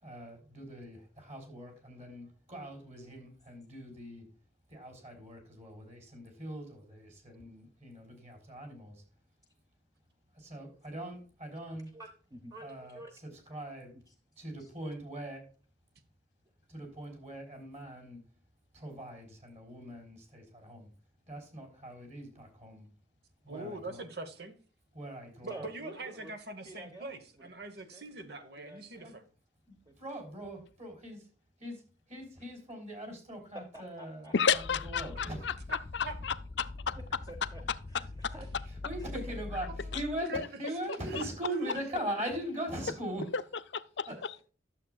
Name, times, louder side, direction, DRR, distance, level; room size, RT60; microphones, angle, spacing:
voice 1, 0.0-4.2 4.7-9.0 10.3-11.9 12.6-13.0 13.5-13.9 14.4-15.4 16.7-18.2 18.7-20.9 21.3-22.9 23.4-24.0 24.9-25.6 29.0-29.1 29.7-31.2 31.6-31.8 32.1-35.4 38.3-38.4 38.8-43.2 44.1-44.2, right 1 dB, 40° right, 3.6 m, -41 dB
voice 2, 11.9-13.1 14.1-14.2 14.6-14.7 25.5-26.3 26.6-27.5 27.9-28.2 28.6-29.1 29.8-29.9 33.7-34.3 37.2-37.6 37.9-38.5 39.0-39.4 41.8-42.7 43.1-43.2 44.1-44.4, right 1 dB, 20° right, 1.0 m, -49 dB
voice 3, 23.5-24.5 25.4-29.2 35.7-36.2 39.1-39.2 39.7-39.9 40.3-40.4 41.1-41.8 44.1-44.2, right 2 dB, 60° right, 1.2 m, -43 dB
voice 4, 34.3-35.5 35.9-37.0 38.2-38.3 39.9-40.0 40.3-40.5 41.1-41.2 43.3-43.4 43.7-44.4, left 6 dB, 75° left, 0.6 m, -32 dB
sound 1, 34.5-40.3, left 2 dB, 25° left, 0.3 m, -43 dB
11.5 x 7.3 x 2.4 m
head